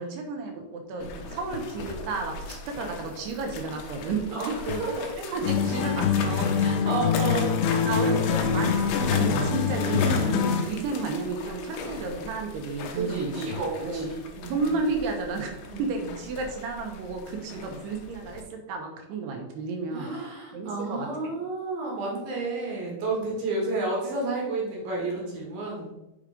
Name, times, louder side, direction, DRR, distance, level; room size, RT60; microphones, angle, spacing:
voice 1, 0.0-6.5 6.8-6.9 7.8-13.5 13.8-14.1 14.5-20.1 20.5-21.1, right 4 dB, 90° right, 4 dB, 3.1 m, -32 dB
sound 1, 1.0-18.4, left 4 dB, 75° left, 2.6 m, -37 dB
sound 2, 5.4-10.8, left 6 dB, 90° left, 2.8 m, -24 dB
voice 2, 6.6-7.5 7.8-8.1 12.9-14.8 15.6-16.1 17.5-17.7 19.9-25.9, right 3 dB, 65° right, -3 dB, 3.7 m, -31 dB
7.2 x 5.1 x 5.1 m, 0.93 s
omnidirectional pair, 4.5 m